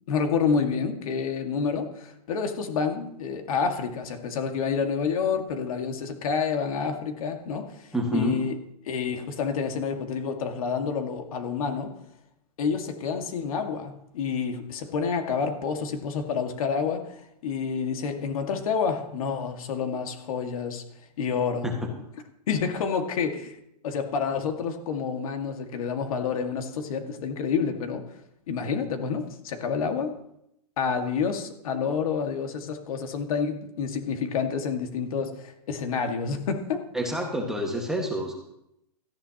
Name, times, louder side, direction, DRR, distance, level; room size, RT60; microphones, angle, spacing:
voice 1, 0.1-8.5 8.9-11.9 12.6-20.8 21.2-21.8 22.5-23.6 23.8-28.0 28.5-30.1 30.8-36.9, left 6 dB, 55° left, 5 dB, 1.9 m, -28 dB
voice 2, 7.9-8.4 21.6-21.7 36.9-38.3, equal, ahead, 0 dB, 1.6 m, -28 dB
18.0 x 13.5 x 2.9 m, 0.79 s
hypercardioid pair, 160°, 21 cm